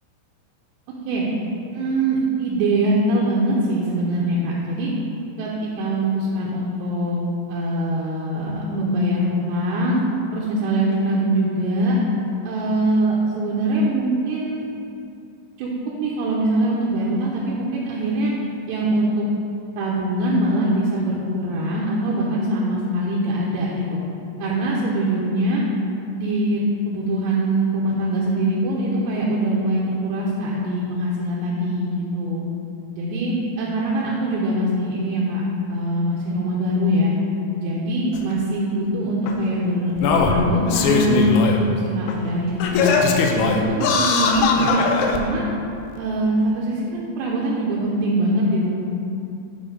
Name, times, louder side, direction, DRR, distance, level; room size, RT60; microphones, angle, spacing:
voice 1, 1.7-4.9 5.4-7.2 7.5-10.0 10.3-12.0 12.4-14.7 15.6-15.7 16.0-18.3 18.7-19.3 19.8-24.0 24.4-25.6 26.1-32.5 32.9-35.4 35.7-37.1 37.6-43.0 43.3-45.4 46.0-48.7, right 1 dB, 80° right, -5 dB, 2.9 m, -22 dB
Singing, 38.1-38.2 39.3-39.4 40.0-41.6 42.1-42.2 42.6-45.2 46.0-46.1, left 4 dB, 90° left, 2.9 m, -20 dB
9.2 x 3.6 x 5.0 m, 2.7 s
omnidirectional pair, 5.2 m